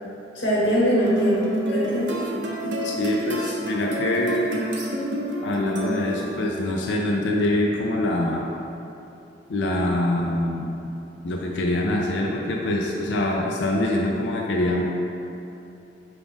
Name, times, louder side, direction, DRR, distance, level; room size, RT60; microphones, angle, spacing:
voice 1, 0.3-2.2 2.6-2.7, equal, 90° left, -7 dB, 1.0 m, -22 dB
sound 1, 1.1-6.5, right 1 dB, 75° right, 0.5 m, -29 dB
voice 2, 2.8-4.6 5.4-8.5 9.5-10.7 11.2-14.8, left 1 dB, 70° left, -1 dB, 0.4 m, -24 dB
5.1 x 2.4 x 3.4 m, 2.9 s
head